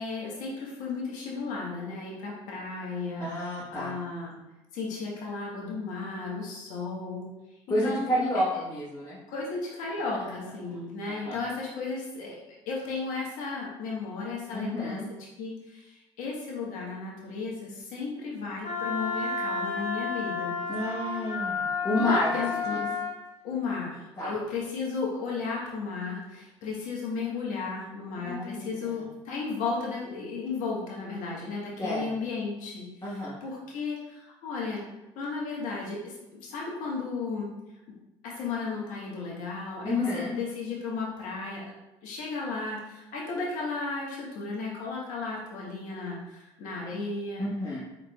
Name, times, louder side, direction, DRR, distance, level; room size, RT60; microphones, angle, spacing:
voice 1, 0.0-3.3 3.7-4.4 4.7-7.2 7.7-8.4 9.3-15.0 15.4-20.5 21.9-23.0 23.4-34.8 35.1-37.5 38.2-41.7 42.0-47.4, left 4 dB, 70° left, -3 dB, 1.4 m, -34 dB
voice 2, 3.2-3.9 7.7-9.2 11.1-11.4 14.5-15.0 20.7-22.8 24.2-24.3 28.2-29.0 31.8-32.1 33.0-33.4 39.8-40.3 47.4-47.8, left 1 dB, 25° left, -7 dB, 1.3 m, -30 dB
Wind instrument woodwind instrument, 18.6-23.2, left 4 dB, 50° left, 1.0 m, -31 dB
4.7 x 4.2 x 2.3 m, 0.97 s
hypercardioid pair, 60°, 14 cm